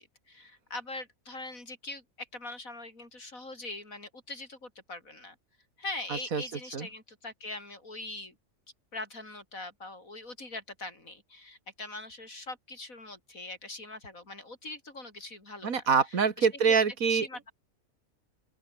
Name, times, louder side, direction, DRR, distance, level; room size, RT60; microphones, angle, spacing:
voice 1, 0.0-5.3 5.8-8.4 8.9-15.7 16.4-16.5 17.1-17.5, left 2 dB, 80° left, 6.0 m, -42 dB
voice 2, 6.1-6.4 6.7-6.9 15.6-17.3, right 6 dB, 85° right, 2.3 m, -25 dB
open air
omnidirectional pair, 1.4 m